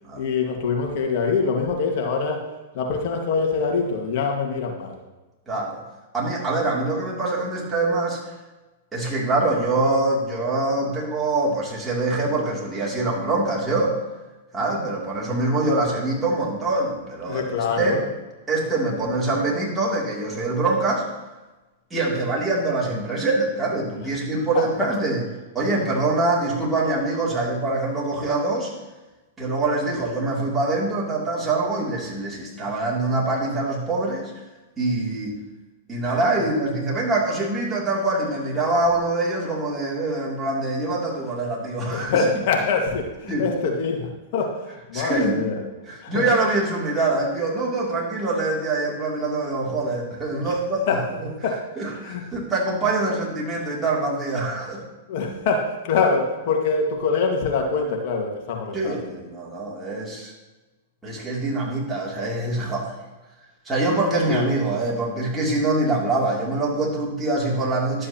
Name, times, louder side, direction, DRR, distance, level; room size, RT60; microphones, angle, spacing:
voice 1, 0.2-2.4 2.7-5.0 17.3-18.0 41.9-45.6 46.0-46.3 50.9-51.0 51.4-51.6 51.9-52.2 55.1-59.0 64.3-64.5, left 4 dB, 55° left, 1 dB, 1.7 m, -24 dB
voice 2, 5.5-5.8 6.1-8.2 8.9-14.0 14.5-17.4 17.8-18.0 18.5-21.1 21.9-25.3 25.5-28.7 29.4-34.3 34.8-35.3 35.9-42.4 43.3-43.7 44.9-45.4 45.8-51.3 51.8-54.8 58.7-60.3 61.0-62.9 63.6-68.1, right 2 dB, 10° right, -5 dB, 2.9 m, -24 dB
12.0 x 7.5 x 3.0 m, 1.1 s
hypercardioid pair, 110°, 0 cm